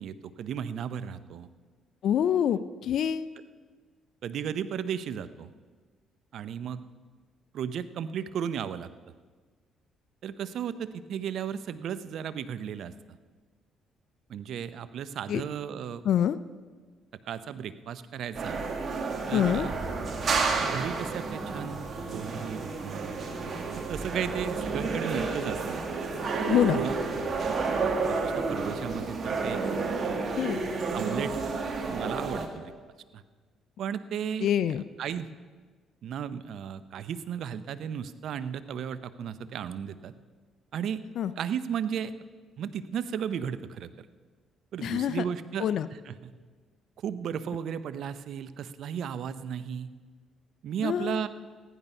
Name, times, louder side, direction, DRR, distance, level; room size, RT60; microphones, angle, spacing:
voice 1, 0.0-1.5 4.2-5.5 6.3-6.8 7.5-8.9 10.2-12.9 14.3-16.0 17.3-18.6 19.3-19.7 20.6-23.1 23.9-25.8 26.7-27.0 27.8-29.6 30.0-30.3 30.9-31.3 31.8-32.7 33.1-33.2 33.8-35.3 36.0-40.1 40.7-41.0 41.4-42.1 42.6-44.1 44.7-46.3 47.0-49.9 50.6-51.3, right 8 dB, 65° right, 14 dB, 0.6 m, -35 dB
voice 2, 2.0-3.3 15.3-15.4 16.1-16.4 19.3-19.7 26.5-26.8 30.4-30.6 34.4-34.8 41.2-41.3 44.8-45.2 45.6-45.9 50.8-51.2, left 9 dB, 65° left, 13 dB, 0.4 m, -25 dB
sound 1, 18.3-32.5, right 4 dB, 45° right, 1.9 m, -31 dB
15.0 x 11.0 x 5.5 m, 1.5 s
supercardioid pair, 80°, 0 cm